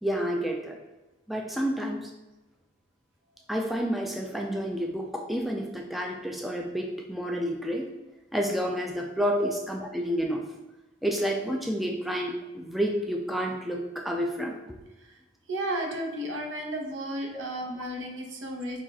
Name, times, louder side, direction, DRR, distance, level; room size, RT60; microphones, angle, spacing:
voice 1, 0.0-0.8 1.3-2.1 3.5-7.9 8.3-10.4 11.0-14.6 17.3-17.4, equal, ahead, 1 dB, 0.3 m, -29 dB
voice 2, 15.5-18.8, right 1 dB, 80° right, 1 dB, 0.9 m, -33 dB
4.9 x 2.4 x 4.1 m, 1.1 s
head